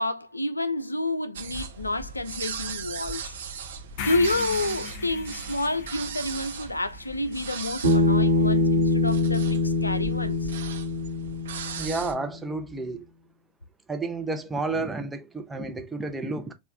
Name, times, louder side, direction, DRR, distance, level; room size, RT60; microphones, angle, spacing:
voice 1, 0.0-3.4 4.0-10.5, left 2 dB, 80° left, 0.4 m, -29 dB
sound 1, 1.4-12.1, right 6 dB, 60° right, 0.6 m, -38 dB
sound 2, 4.0-8.1, left 7 dB, 50° left, 0.7 m, -39 dB
Bass guitar, 7.8-12.2, left 2 dB, 80° right, 1.2 m, -24 dB
voice 2, 11.8-13.0 13.9-16.5, right 3 dB, 10° right, 0.7 m, -31 dB
4.6 x 2.4 x 3.4 m
figure-of-eight pair, 90°, 0 cm